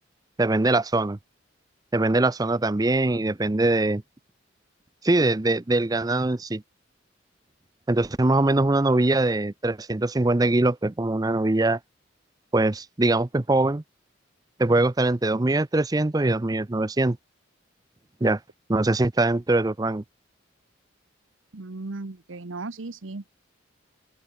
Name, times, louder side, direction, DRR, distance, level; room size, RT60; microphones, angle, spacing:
voice 1, 0.4-1.2 1.9-4.0 5.0-6.6 7.9-11.8 12.5-13.8 14.6-17.2 18.2-18.4 18.7-20.0, right 2 dB, 20° right, 0.5 m, -22 dB
voice 2, 21.5-23.3, right 3 dB, 80° right, 1.0 m, -36 dB
open air
head